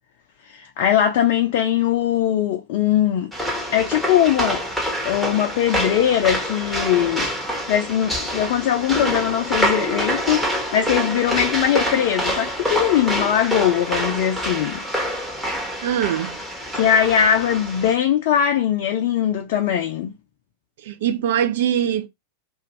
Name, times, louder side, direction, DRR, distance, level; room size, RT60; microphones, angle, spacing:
voice 1, 0.4-3.3 3.7-4.6 5.0-7.3 7.7-14.8 16.7-20.1, left 10 dB, 50° left, 0.4 m, -20 dB
sound 1, 3.3-17.9, equal, 5° right, 1.0 m, -26 dB
voice 2, 15.8-16.4 20.8-22.1, right 10 dB, 55° right, 0.4 m, -22 dB
2.5 x 2.4 x 3.0 m
figure-of-eight pair, 90°, 0 cm